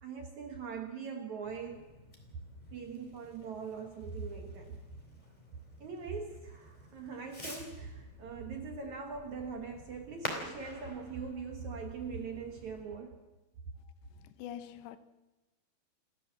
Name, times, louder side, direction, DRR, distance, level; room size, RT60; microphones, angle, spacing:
voice 1, 0.0-1.9 2.7-4.8 5.8-13.2, right 5 dB, 60° right, 2.1 m, -41 dB
Fireworks, 1.4-12.8, left 1 dB, 10° left, 3.4 m, -49 dB
voice 2, 14.4-15.0, left 10 dB, 80° left, 3.0 m, -43 dB
29.0 x 13.0 x 7.6 m
omnidirectional pair, 5.1 m